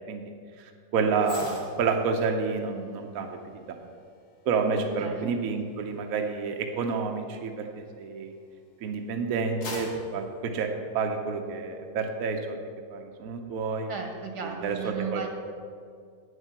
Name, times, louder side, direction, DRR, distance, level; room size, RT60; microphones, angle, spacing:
voice 1, 0.6-3.4 3.7-3.8 4.5-8.3 8.8-12.6 12.9-13.9 14.4-15.3, right 4 dB, 65° right, 3 dB, 1.1 m, -29 dB
sound 1, 1.2-8.6 9.1-11.4 11.8-12.0, left 2 dB, 75° left, 2.2 m, -46 dB
voice 2, 13.9-15.3, right 6 dB, 80° right, 3 dB, 1.9 m, -35 dB
9.0 x 8.1 x 5.8 m, 2.2 s
omnidirectional pair, 1.7 m